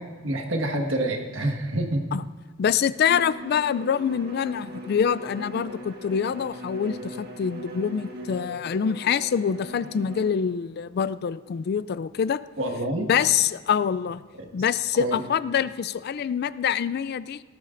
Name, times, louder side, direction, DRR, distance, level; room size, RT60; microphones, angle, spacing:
voice 1, 0.0-2.0 12.6-13.1 14.4-14.5 15.0-15.2, right 1 dB, 75° right, 3 dB, 1.6 m, -27 dB
voice 2, 2.6-12.4 13.1-14.2 14.5-17.4, left 7 dB, 50° left, 16 dB, 0.3 m, -25 dB
Bowed string instrument, 3.0-10.4, equal, 55° right, 1.5 m, -40 dB
18.0 x 13.5 x 2.6 m, 1.4 s
head